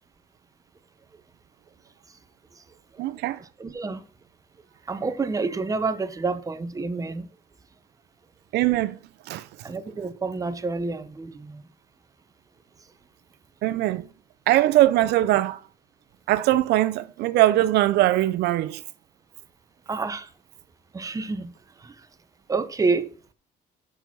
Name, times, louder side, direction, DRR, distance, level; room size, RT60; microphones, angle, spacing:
voice 1, 3.0-3.4 8.5-9.0 9.3-9.5 13.6-14.1 14.5-15.6 16.3-18.8, right 15 dB, 80° right, 0.5 m, -21 dB
voice 2, 3.6-4.0 4.9-7.3 9.6-11.6 19.9-20.3 20.9-21.5 21.8-21.9 22.5-23.1, right 4 dB, 20° right, 0.9 m, -28 dB
6.9 x 6.1 x 6.1 m
cardioid pair, 110°, 17 cm